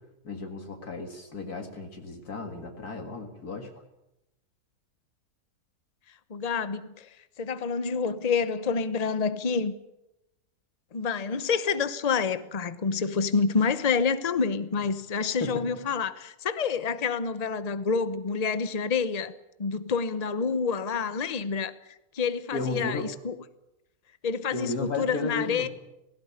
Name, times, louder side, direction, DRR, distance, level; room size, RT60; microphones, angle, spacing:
voice 1, 0.2-3.7 15.4-15.7 22.5-23.1 24.5-25.7, left 3 dB, 80° left, 2.5 m, -34 dB
voice 2, 6.3-7.1 7.4-9.7 10.9-19.3 19.6-23.4 24.2-25.7, left 5 dB, 30° left, 0.9 m, -28 dB
17.5 x 17.0 x 9.6 m
omnidirectional pair, 1.6 m